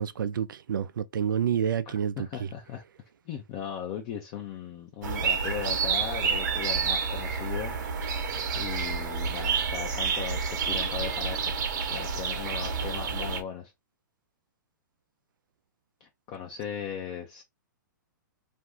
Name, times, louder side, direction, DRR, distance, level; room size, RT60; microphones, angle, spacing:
voice 1, 0.0-2.5, right 8 dB, 75° right, 0.4 m, -29 dB
voice 2, 1.9-2.8 3.3-11.6 11.9-13.7 16.0-17.4, left 8 dB, 35° left, 0.6 m, -38 dB
sound 1, 5.0-13.4, right 5 dB, 60° right, 0.9 m, -29 dB
2.6 x 2.2 x 3.5 m
hypercardioid pair, 120°, 11 cm